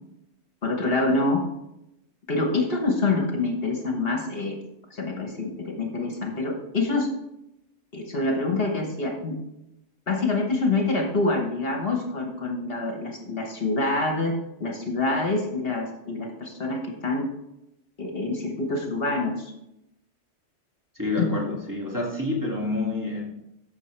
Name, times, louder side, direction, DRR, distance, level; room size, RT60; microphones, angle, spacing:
voice 1, 0.6-1.4 2.3-4.6 4.9-7.1 7.9-9.4 10.1-17.3 18.0-19.5 21.2-21.3, left 3 dB, 55° left, 3 dB, 1.3 m, -26 dB
voice 2, 21.0-23.2, left 2 dB, 15° right, -3 dB, 2.0 m, -28 dB
14.0 x 6.0 x 3.2 m, 0.86 s
omnidirectional pair, 1.3 m